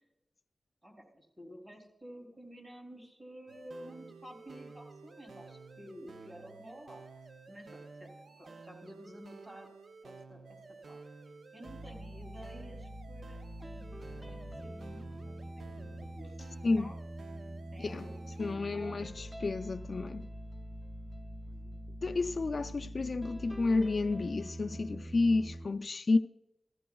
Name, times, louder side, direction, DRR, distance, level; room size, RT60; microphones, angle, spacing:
voice 1, 0.8-7.0 7.5-9.7 10.0-10.6 10.8-11.0 11.2-16.4 16.8-16.9 17.7-18.1 18.5-19.0 21.5-21.9, equal, 35° right, 3.0 m, -51 dB
sound 1, 3.5-18.6, right 4 dB, 85° right, 0.6 m, -52 dB
sound 2, 11.7-25.7, right 1 dB, 10° right, 0.5 m, -44 dB
voice 2, 18.4-20.3 22.0-26.2, left 3 dB, 55° left, 0.3 m, -31 dB
16.0 x 14.0 x 2.3 m
wide cardioid pair, 110°, 0 cm